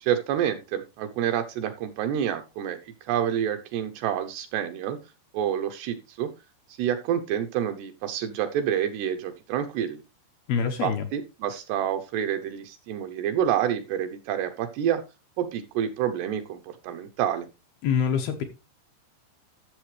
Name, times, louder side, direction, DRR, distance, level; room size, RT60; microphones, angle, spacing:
voice 1, 0.0-2.8 3.1-5.0 5.3-6.3 6.8-10.0 10.8-15.0 15.4-17.5, right 9 dB, 75° right, 2.6 m, -28 dB
voice 2, 10.5-11.1 17.8-18.4, left 7 dB, 75° left, 2.4 m, -25 dB
13.5 x 7.0 x 3.2 m
omnidirectional pair, 5.3 m